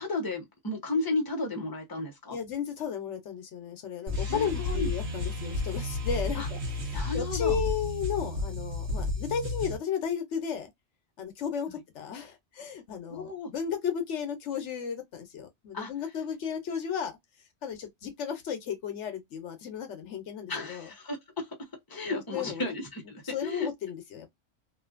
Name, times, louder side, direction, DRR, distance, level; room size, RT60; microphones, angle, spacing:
voice 1, 0.0-2.4 4.1-4.9 6.3-6.5 6.9-7.6 11.7-11.8 13.1-13.5 15.7-15.9 20.5-21.5 21.9-23.7, left 2 dB, 20° left, 0.9 m, -33 dB
voice 2, 2.3-10.7 11.2-17.1 17.6-20.9 22.0-22.8 23.2-24.3, left 7 dB, 80° left, 1.0 m, -34 dB
sound 1, 4.1-9.8, left 2 dB, 65° right, 1.2 m, -32 dB
2.7 x 2.5 x 2.4 m
omnidirectional pair, 1.2 m